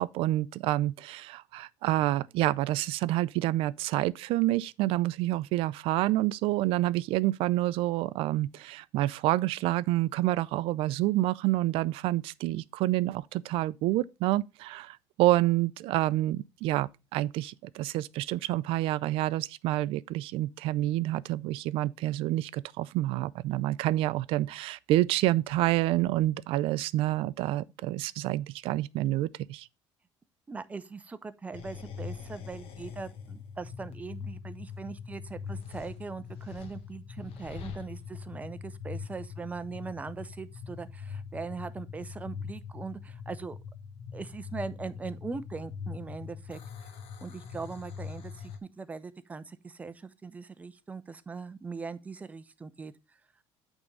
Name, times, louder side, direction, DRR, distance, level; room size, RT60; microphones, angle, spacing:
voice 1, 0.0-29.7, right 16 dB, 65° right, 0.4 m, -28 dB
voice 2, 30.5-43.6 44.1-46.9 47.2-52.9, right 4 dB, 15° right, 0.5 m, -40 dB
sound 1, 31.5-48.6, left 6 dB, 70° left, 1.1 m, -42 dB
8.6 x 3.6 x 5.2 m
cardioid pair, 145°, 10 cm